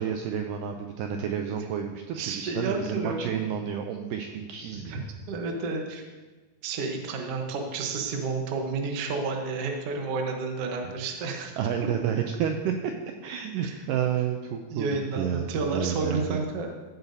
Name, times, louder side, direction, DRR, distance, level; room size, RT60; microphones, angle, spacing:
voice 1, 0.0-5.0 11.6-12.7 13.2-16.4, right 8 dB, 85° right, 4 dB, 1.9 m, -30 dB
voice 2, 2.1-3.4 4.7-6.0 6.6-11.5 11.8-11.9 13.6-13.8 14.7-16.7, right 4 dB, 65° right, 2 dB, 1.5 m, -31 dB
15.0 x 8.0 x 2.8 m, 1.3 s
omnidirectional pair, 4.3 m